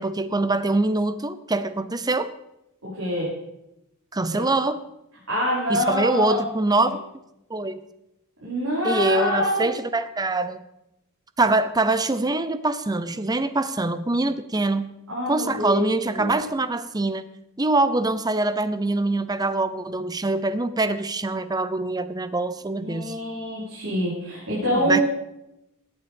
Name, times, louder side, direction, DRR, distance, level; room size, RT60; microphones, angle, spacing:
voice 1, 0.0-2.3 4.1-4.8 5.7-7.0 7.5-7.9 8.8-10.6 11.4-14.9 15.3-17.3 17.6-23.1 24.7-25.0, right 2 dB, 20° right, 13 dB, 0.6 m, -24 dB
voice 2, 2.8-3.3 4.3-4.4 5.3-6.4 6.7-6.9 8.4-9.7 15.1-16.3 22.7-25.0, equal, 70° right, -8 dB, 5.2 m, -26 dB
16.5 x 8.9 x 5.3 m, 0.87 s
head